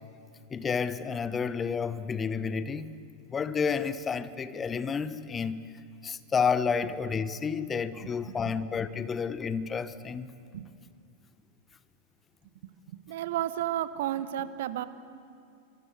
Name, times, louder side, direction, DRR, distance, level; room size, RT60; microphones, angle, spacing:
voice 1, 0.5-3.0 3.3-5.6 6.0-10.3, left 6 dB, 20° left, 1.1 m, -30 dB
voice 2, 13.1-14.9, right 12 dB, 55° right, 1.2 m, -31 dB
26.5 x 24.0 x 8.3 m
figure-of-eight pair, 90°, 0 cm